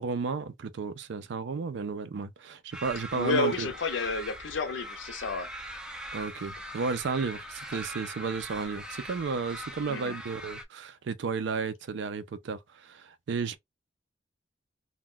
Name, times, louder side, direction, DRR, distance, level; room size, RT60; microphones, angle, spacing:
voice 1, 0.0-3.7 6.1-13.6, right 4 dB, 65° right, 0.4 m, -33 dB
sound 1, 2.7-10.6, right 1 dB, 5° right, 0.4 m, -41 dB
voice 2, 3.1-5.5 9.9-10.1, left 3 dB, 75° left, 0.6 m, -30 dB
2.3 x 2.2 x 3.6 m
head